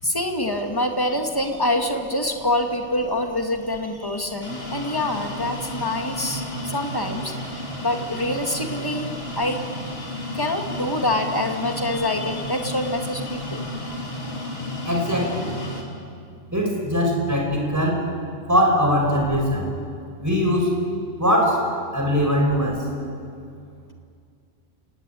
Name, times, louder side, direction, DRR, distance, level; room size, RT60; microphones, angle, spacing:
voice 1, 0.0-7.3 7.8-13.6, left 1 dB, 20° left, 4 dB, 2.2 m, -26 dB
sound 1, 4.4-15.8, left 1 dB, 55° left, 3.3 m, -32 dB
voice 2, 14.9-15.5 16.5-18.0 18.5-19.7 20.2-20.8 21.2-21.6 21.9-22.8, equal, 15° right, 0 dB, 5.3 m, -21 dB
29.5 x 18.0 x 9.3 m, 2.3 s
omnidirectional pair, 1.2 m